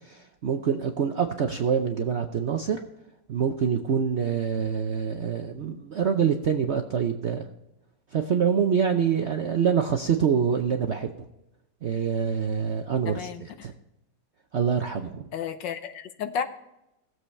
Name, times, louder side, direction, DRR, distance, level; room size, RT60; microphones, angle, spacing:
voice 1, 0.0-2.8 3.3-7.4 8.1-11.1 11.8-13.7 14.5-15.3, right 7 dB, 60° right, 5 dB, 0.7 m, -25 dB
voice 2, 13.1-13.7 15.3-16.4, left 7 dB, 80° left, 8 dB, 1.6 m, -32 dB
18.0 x 7.8 x 3.2 m, 0.90 s
omnidirectional pair, 1.9 m